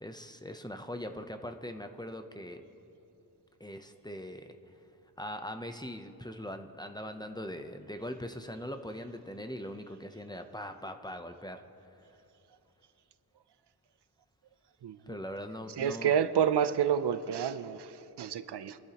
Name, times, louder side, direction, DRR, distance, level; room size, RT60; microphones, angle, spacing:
voice 1, 0.0-2.6 3.6-4.6 5.2-11.6 12.0-12.1 15.1-16.1, equal, 10° left, 7 dB, 0.6 m, -41 dB
voice 2, 14.8-15.2 15.8-18.8, right 8 dB, 90° right, 14 dB, 0.6 m, -29 dB
25.0 x 12.0 x 2.9 m, 2.9 s
wide cardioid pair, 105°, 40 cm